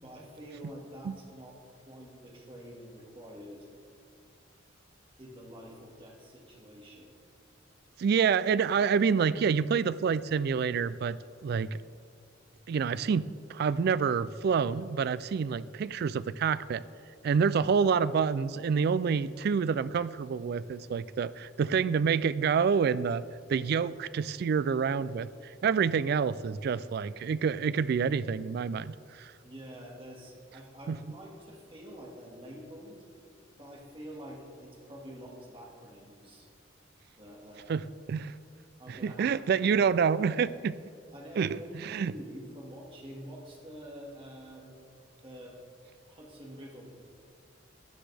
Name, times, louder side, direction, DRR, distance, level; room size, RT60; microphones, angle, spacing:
voice 1, 0.0-3.7 5.2-7.1 29.4-33.1 33.6-36.5 37.2-37.7 38.8-39.6 41.1-44.8 45.2-45.6 46.1-46.9, equal, 30° right, -2 dB, 1.9 m, -47 dB
voice 2, 8.0-11.2 11.4-11.8 12.7-16.8 17.2-23.2 23.5-29.3 30.9-31.0 37.7-37.8 38.1-38.3 38.9-40.7 41.4-42.1, right 6 dB, 55° right, 17 dB, 0.3 m, -27 dB
14.5 x 9.7 x 3.4 m, 2.3 s
head